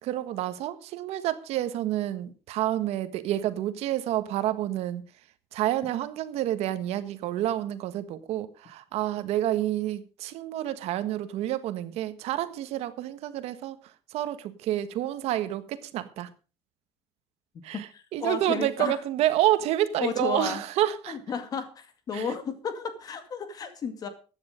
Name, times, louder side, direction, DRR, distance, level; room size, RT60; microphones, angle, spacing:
voice 1, 0.0-5.1 5.5-13.8 14.1-16.3 17.6-21.2 22.1-22.3, right 13 dB, 75° right, 1.5 m, -29 dB
voice 2, 17.9-19.0 20.0-20.6 21.1-24.1, left 6 dB, 35° left, 2.2 m, -33 dB
14.5 x 9.8 x 5.1 m
cardioid pair, 175°, 11 cm